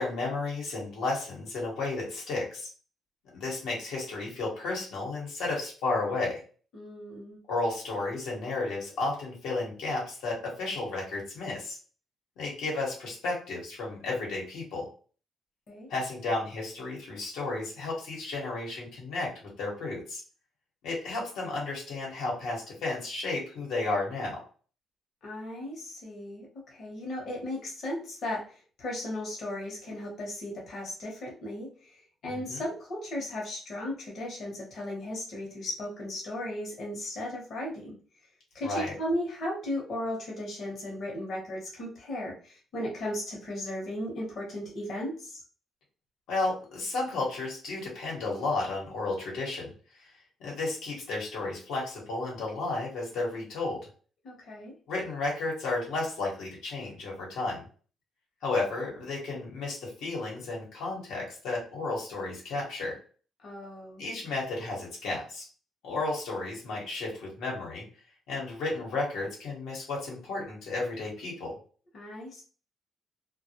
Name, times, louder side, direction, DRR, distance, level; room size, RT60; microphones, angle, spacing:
voice 1, 0.0-2.7 3.3-6.4 7.5-11.8 12.4-14.9 15.9-20.2 20.8-24.4 32.3-32.6 38.6-38.9 46.3-49.7 50.0-50.1 50.4-53.9 54.9-57.6 58.4-63.0 64.0-65.5 65.8-67.8 68.3-71.6, left 3 dB, 90° left, -3 dB, 1.0 m, -33 dB
voice 2, 6.7-7.4 15.7-15.9 25.2-38.0 38.5-45.4 54.2-54.7 63.4-64.0 71.9-72.4, left 1 dB, 55° left, -2 dB, 0.9 m, -36 dB
2.2 x 2.0 x 2.8 m, 0.40 s
cardioid pair, 90°, 0 cm